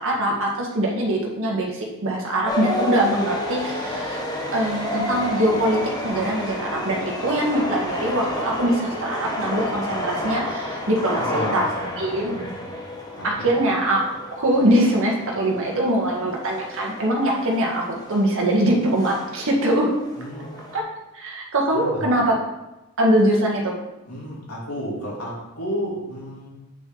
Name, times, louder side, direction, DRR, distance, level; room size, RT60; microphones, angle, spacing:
voice 1, 0.0-4.2 4.5-11.6 12.0-12.3 13.2-14.0 14.3-19.9 20.7-20.8 21.1-22.3 23.0-23.7, right 1 dB, 65° right, -2 dB, 1.8 m, -22 dB
sound 1, 2.5-20.8, left 1 dB, 20° left, 1.3 m, -30 dB
voice 2, 11.3-12.5 13.2-13.5 20.2-20.5 21.7-22.0 24.1-26.5, equal, 85° left, -5 dB, 3.1 m, -32 dB
8.7 x 6.0 x 4.0 m, 0.98 s
head